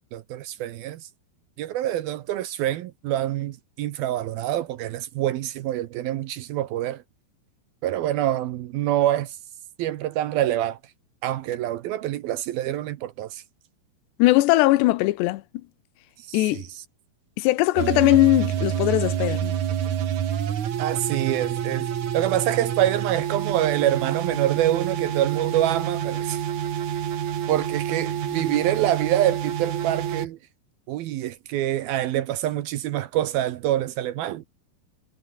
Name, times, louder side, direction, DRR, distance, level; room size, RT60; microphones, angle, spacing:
voice 1, 0.1-1.0 1.6-7.0 7.8-9.4 9.8-10.8 11.2-13.4 16.2-16.6 20.8-21.9 22.1-26.4 27.5-30.4 30.9-34.4, right 13 dB, 70° right, 2.5 m, -26 dB
voice 2, 14.2-15.4 16.3-16.7 17.4-19.6, left 18 dB, 85° left, 2.9 m, -20 dB
sound 1, 17.8-30.3, right 9 dB, 50° right, 2.7 m, -28 dB
omnidirectional pair, 5.0 m